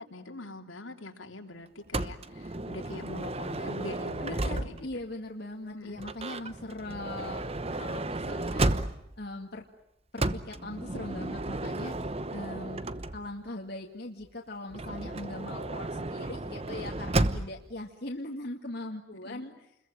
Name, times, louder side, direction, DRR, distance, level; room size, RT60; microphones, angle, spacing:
voice 1, 0.0-5.0 5.7-6.0 19.2-19.5, left 2 dB, 80° left, 3 dB, 3.3 m, -43 dB
Motor vehicle (road) / Sliding door, 1.9-5.0 6.0-9.2 10.2-13.5 14.7-17.7, right 2 dB, 30° right, 1.0 m, -33 dB
voice 2, 4.2-8.7 9.2-9.6 10.1-12.9 13.1-19.5, left 2 dB, 55° left, 1 dB, 2.1 m, -40 dB
29.5 x 22.0 x 9.0 m, 0.83 s
head